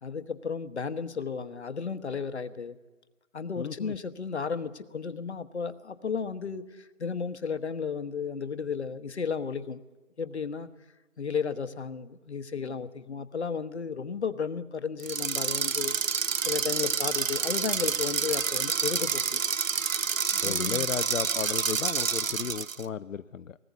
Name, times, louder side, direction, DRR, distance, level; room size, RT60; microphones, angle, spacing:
voice 1, 0.0-2.8 3.3-9.8 10.2-10.7 11.2-15.9 16.4-19.4 20.4-20.9, left 6 dB, 55° left, 12 dB, 1.2 m, -33 dB
voice 2, 3.6-3.9 20.4-23.6, left 7 dB, 75° left, 12 dB, 0.7 m, -34 dB
sound 1, 15.0-22.8, right 6 dB, 80° right, 0.9 m, -28 dB
20.0 x 19.0 x 8.2 m, 1.2 s
hypercardioid pair, 175°, 39 cm